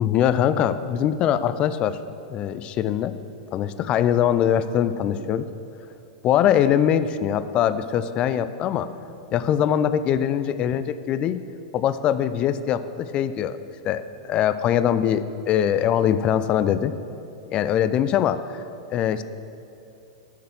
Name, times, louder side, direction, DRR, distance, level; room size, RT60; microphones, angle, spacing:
voice 1, 0.0-2.0 2.3-3.2 3.5-5.5 6.2-8.9 9.3-11.4 11.7-13.6 13.8-16.9 17.5-18.6 18.9-19.2, left 9 dB, 35° left, 13 dB, 0.4 m, -22 dB
6.7 x 6.5 x 7.5 m, 2.8 s
figure-of-eight pair, 95°, 3 cm